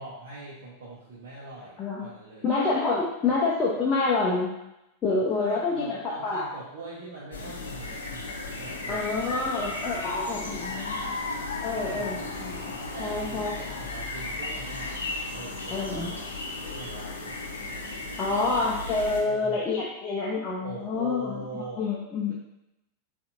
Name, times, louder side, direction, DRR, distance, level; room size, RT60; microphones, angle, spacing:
voice 1, 0.0-2.4 5.4-9.5 10.4-11.0 11.7-12.3 12.9-14.9 15.3-17.4 18.3-18.6 19.1-19.6 20.6-21.8, right 3 dB, 55° right, -6 dB, 0.9 m, -42 dB
voice 2, 2.4-4.5 5.0-6.4 8.9-11.1 11.6-12.6 13.0-13.8 15.7-16.1 18.2-22.3, left 3 dB, 25° left, -5 dB, 0.7 m, -27 dB
sound 1, 7.3-19.2, left 2 dB, 70° left, 0.7 m, -35 dB
6.8 x 2.7 x 2.5 m, 0.89 s
figure-of-eight pair, 90°, 0 cm